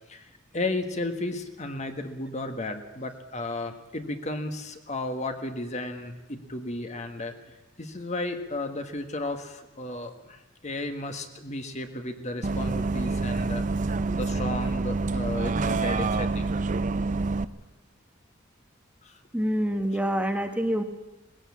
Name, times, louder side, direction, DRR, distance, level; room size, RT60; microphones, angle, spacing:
voice 1, 0.1-7.3 7.8-13.9 14.2-16.5 19.0-19.2, left 2 dB, 35° left, 7 dB, 1.5 m, -34 dB
Bus, 12.4-17.4, right 3 dB, 40° right, 0.6 m, -27 dB
voice 2, 19.3-20.8, equal, 5° right, 5 dB, 1.1 m, -26 dB
20.0 x 16.0 x 8.5 m, 1.0 s
head